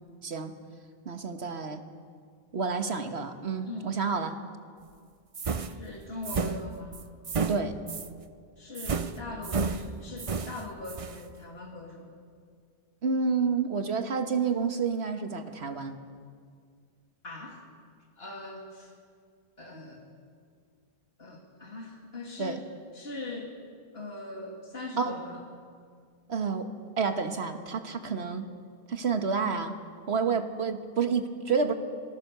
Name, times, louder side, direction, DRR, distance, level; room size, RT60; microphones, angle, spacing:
voice 1, 0.2-0.5 1.0-1.8 2.5-4.4 7.5-7.7 13.0-16.0 22.4-22.6 25.0-25.2 26.3-26.7 27.0-28.4 28.9-29.7 30.1-31.7, right 5 dB, 90° right, 7 dB, 1.7 m, -29 dB
sound 1, 5.3-8.2 8.7-11.2, right 4 dB, 35° right, 0.7 m, -32 dB
voice 2, 5.7-7.0 8.6-12.1 17.2-17.6 18.2-18.9 19.6-20.0 21.2-22.6 22.9-23.6 23.9-25.4, left 2 dB, 70° left, -1 dB, 2.8 m, -41 dB
25.5 x 19.0 x 6.8 m, 2.1 s
omnidirectional pair, 1.1 m